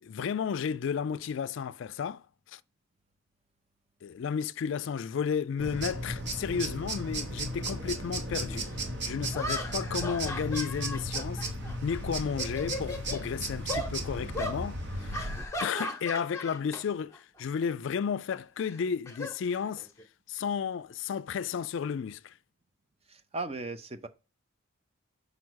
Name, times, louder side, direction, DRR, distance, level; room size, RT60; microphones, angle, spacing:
voice 1, 0.0-2.6 4.0-8.7 9.0-11.4 11.8-15.3 15.6-19.9 20.3-22.4, left 6 dB, 65° left, 0.3 m, -33 dB
sound 1, 5.6-15.5, right 1 dB, 55° right, 1.1 m, -35 dB
sound 2, 8.5-8.6 9.3-12.0 12.3-13.2 13.7-13.9 14.3-14.6 15.1-16.8 17.1-17.4 18.6-20.0, left 1 dB, 15° left, 0.9 m, -37 dB
voice 2, 23.1-24.1, right 3 dB, 30° right, 0.6 m, -37 dB
5.1 x 4.8 x 6.2 m
head